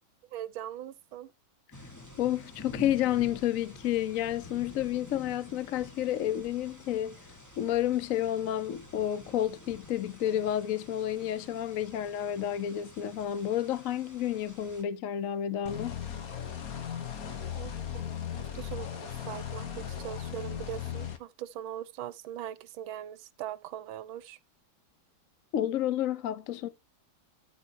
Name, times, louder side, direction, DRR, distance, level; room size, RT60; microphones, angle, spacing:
voice 1, 0.3-1.3 17.5-18.0 18.4-24.4, right 11 dB, 80° right, 1.5 m, -41 dB
sound 1, 1.7-14.8, left 2 dB, 10° left, 1.4 m, -49 dB
voice 2, 2.2-7.2 7.6-16.0 25.5-26.7, left 11 dB, 65° left, 0.8 m, -30 dB
sound 2, 15.7-21.2, left 9 dB, 50° left, 1.5 m, -37 dB
13.0 x 4.4 x 4.6 m
omnidirectional pair, 2.2 m